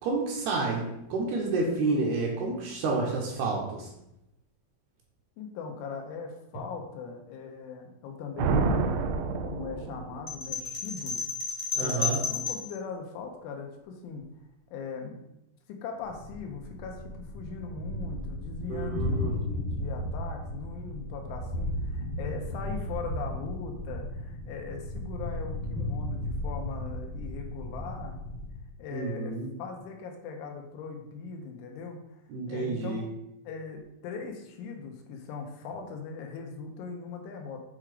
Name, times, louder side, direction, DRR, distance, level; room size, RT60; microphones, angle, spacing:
voice 1, 0.0-3.9 11.7-12.2 18.7-19.3 28.9-29.5 32.3-33.0, right 3 dB, 70° right, -1 dB, 2.7 m, -30 dB
voice 2, 5.4-9.0 9.4-11.2 11.8-14.3 14.7-15.3 15.7-28.2 28.8-32.2 32.5-33.0 33.5-37.6, left 5 dB, 85° left, 2 dB, 3.5 m, -40 dB
sound 1, 8.4-10.4, right 4 dB, 90° right, 3.1 m, -28 dB
sound 2, 10.3-12.7, left 5 dB, 40° left, 1.4 m, -32 dB
Thunder, 16.0-28.7, left 1 dB, 70° left, 2.0 m, -35 dB
8.8 x 3.7 x 5.0 m, 0.84 s
omnidirectional pair, 5.4 m